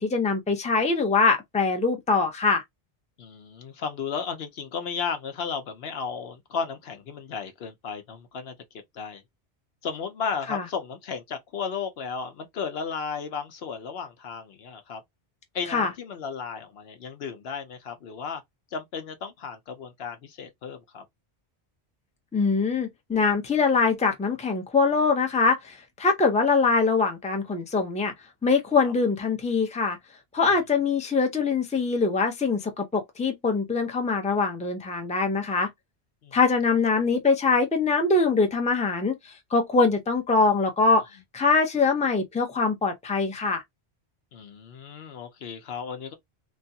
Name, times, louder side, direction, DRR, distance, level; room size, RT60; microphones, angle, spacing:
voice 1, 0.0-2.6 10.5-10.6 15.7-15.9 22.3-28.1 28.4-30.0 30.3-35.7 36.3-41.0 41.3-43.6, left 4 dB, 10° left, 0.5 m, -23 dB
voice 2, 3.2-8.5 8.9-9.2 9.8-15.0 15.5-18.4 18.7-21.0 36.2-36.4 44.3-46.1, left 6 dB, 70° left, 0.9 m, -34 dB
3.1 x 2.3 x 2.7 m
omnidirectional pair, 1.1 m